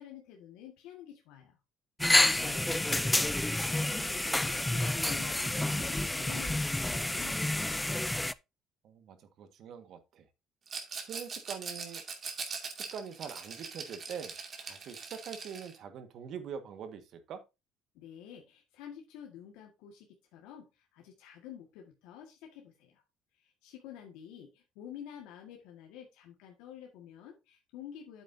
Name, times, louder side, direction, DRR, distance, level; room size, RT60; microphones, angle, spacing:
voice 1, 0.0-1.6 2.0-3.3 3.6-7.9 17.9-23.0 23.3-28.2, left 9 dB, 85° left, 1.7 m, -49 dB
sound 1, 2.0-8.3, left 1 dB, 10° left, 0.4 m, -29 dB
voice 2, 8.8-10.2 11.1-12.0 12.9-14.4 14.7-17.4, right 7 dB, 60° right, 1.6 m, -43 dB
Rattle, 10.7-15.8, right 5 dB, 40° right, 2.3 m, -41 dB
8.5 x 8.2 x 2.7 m
cardioid pair, 105°, 0 cm